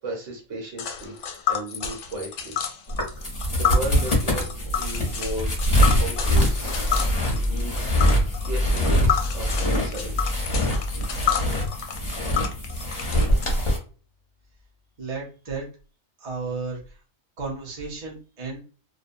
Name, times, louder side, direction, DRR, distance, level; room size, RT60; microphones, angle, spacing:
voice 1, 0.0-1.2 1.5-2.5 3.5-4.4 4.7-5.5 6.0-6.7 7.3-7.9 8.4-10.5, right 1 dB, 70° right, 0 dB, 1.3 m, -35 dB
Tick, 0.8-13.4, left 9 dB, 70° left, 0.8 m, -30 dB
sound 1, 2.9-13.8, equal, 30° left, 0.7 m, -24 dB
sound 2, 5.4-12.6, left 1 dB, 85° right, 1.2 m, -29 dB
voice 2, 15.0-15.7 16.2-17.0 17.4-18.6, right 4 dB, 35° right, -3 dB, 0.7 m, -33 dB
2.6 x 2.2 x 2.5 m, 0.36 s
omnidirectional pair, 1.3 m